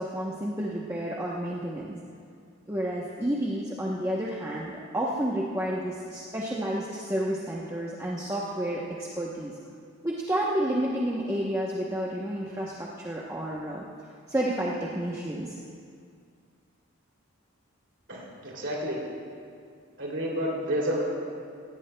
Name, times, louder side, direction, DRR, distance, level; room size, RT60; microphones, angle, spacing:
voice 1, 0.0-2.0 2.7-9.5 10.0-13.8 14.3-15.6, right 1 dB, 15° right, -4 dB, 0.8 m, -30 dB
voice 2, 18.1-19.0 20.0-21.0, equal, 55° right, -3 dB, 2.7 m, -30 dB
17.0 x 16.5 x 2.2 m, 2.3 s
head